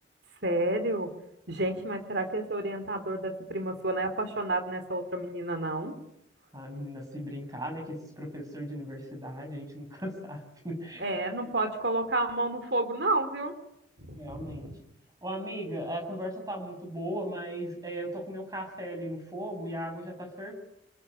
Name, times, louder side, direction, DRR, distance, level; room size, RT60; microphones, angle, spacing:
voice 1, 0.4-1.1 1.5-5.9 11.0-13.5 14.0-14.7, right 2 dB, 60° right, 8 dB, 3.0 m, -30 dB
voice 2, 6.5-11.0 14.1-14.7 15.2-20.5, equal, 20° right, 3 dB, 6.8 m, -37 dB
28.0 x 20.0 x 9.9 m, 0.82 s
head